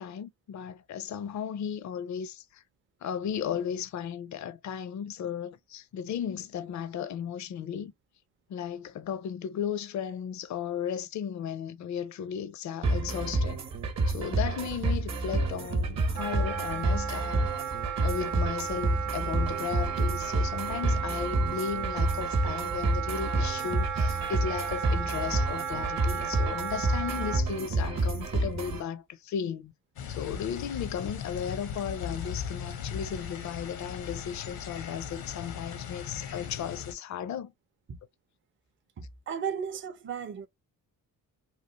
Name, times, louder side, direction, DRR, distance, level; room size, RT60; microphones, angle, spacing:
voice 1, 0.0-2.6 3.0-7.9 8.5-13.6 14.1-17.5 18.0-29.7 30.1-37.5, left 8 dB, 50° left, 0.5 m, -35 dB
sound 1, 12.8-28.8, right 2 dB, 50° right, 0.9 m, -29 dB
Wind instrument woodwind instrument, 16.1-27.4, right 7 dB, 90° right, 0.7 m, -35 dB
sound 2, 30.0-36.9, left 7 dB, 85° left, 0.8 m, -38 dB
voice 2, 39.0-40.5, right 7 dB, 35° right, 0.5 m, -35 dB
3.1 x 2.4 x 2.7 m
cardioid pair, 100°, 36 cm